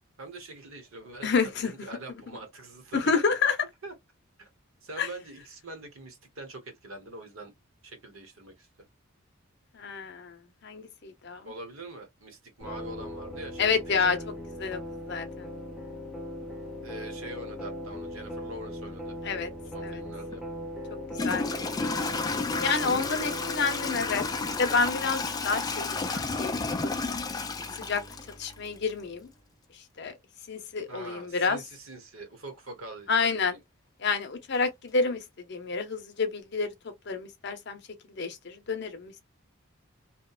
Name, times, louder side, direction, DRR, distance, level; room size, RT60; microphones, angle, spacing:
voice 1, 0.2-3.2 3.8-3.9 4.4-4.5 4.8-7.5 7.8-8.7 11.4-14.3 16.8-19.2 19.7-20.4 30.9-33.6, right 2 dB, 70° right, 0.9 m, -44 dB
voice 2, 1.2-1.7 2.9-3.6 5.0-5.1 9.8-10.4 10.6-11.4 13.6-14.2 14.6-14.8 15.1-15.5 19.2-19.5 19.8-20.0 21.2-21.5 22.6-24.2 24.6-27.4 27.9-28.0 28.4-29.3 30.0-30.1 30.5-31.6 33.1-33.5 34.0-35.2 35.5-36.7 37.1-37.8 38.2-39.1, left 4 dB, 50° left, 0.6 m, -29 dB
sound 1, 12.6-29.3, left 1 dB, ahead, 0.8 m, -40 dB
Toilet flush / Trickle dribble, 20.3-20.4 21.1-28.9, left 4 dB, 20° left, 0.3 m, -32 dB
2.8 x 2.1 x 2.3 m
head